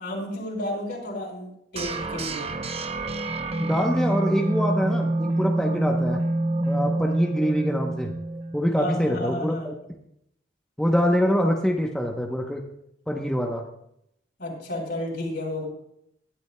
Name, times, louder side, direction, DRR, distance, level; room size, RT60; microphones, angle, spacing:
voice 1, 0.0-2.4 8.8-9.6 14.4-15.7, left 1 dB, 55° left, 0 dB, 4.0 m, -31 dB
sound 1, 1.7-8.7, right 2 dB, 30° right, 0.7 m, -26 dB
voice 2, 3.6-6.2 6.7-8.2 8.5-9.7 10.8-12.6 13.1-13.7, equal, 5° left, 1 dB, 0.8 m, -24 dB
19.5 x 11.5 x 2.2 m, 0.76 s
head